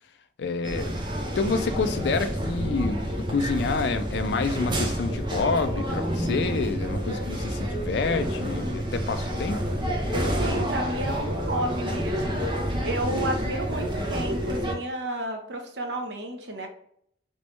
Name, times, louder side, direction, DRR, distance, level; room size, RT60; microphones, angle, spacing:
voice 1, 0.4-0.9 1.4-3.0 3.3-9.6, left 4 dB, 65° left, 9 dB, 0.4 m, -28 dB
sound 1, 0.6-14.7, equal, 25° right, 0.6 m, -29 dB
voice 2, 10.3-12.4 12.8-16.7, right 1 dB, 70° right, 3 dB, 0.7 m, -31 dB
3.2 x 3.0 x 3.1 m, 0.68 s
head